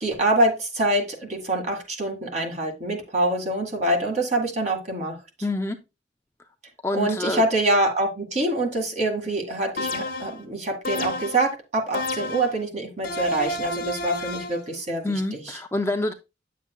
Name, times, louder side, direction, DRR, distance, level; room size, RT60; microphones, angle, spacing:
voice 1, 0.0-5.2 6.9-15.0, right 1 dB, 40° right, 2.0 m, -25 dB
voice 2, 5.4-5.8 6.8-7.4 15.0-16.1, left 2 dB, 15° left, 0.5 m, -26 dB
sound 1, 9.8-10.4 10.8-11.5 11.9-12.6 13.0-14.6, left 1 dB, 55° left, 1.1 m, -30 dB
9.4 x 7.2 x 2.3 m
head